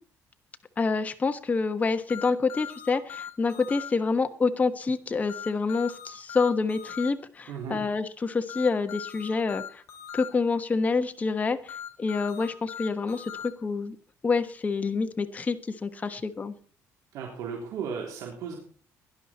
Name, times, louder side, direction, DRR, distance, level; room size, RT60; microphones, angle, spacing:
voice 1, 0.8-9.8 10.1-14.0 14.2-16.5, left 4 dB, 25° left, 8 dB, 1.2 m, -27 dB
sound 1, 2.1-3.9 5.3-7.1 8.5-10.3 11.7-13.5, left 9 dB, 60° left, 4.4 m, -39 dB
voice 2, 7.5-7.8 17.1-18.6, right 6 dB, 75° right, -1 dB, 3.5 m, -35 dB
17.0 x 11.0 x 4.4 m, 0.43 s
cardioid pair, 120°, 6 cm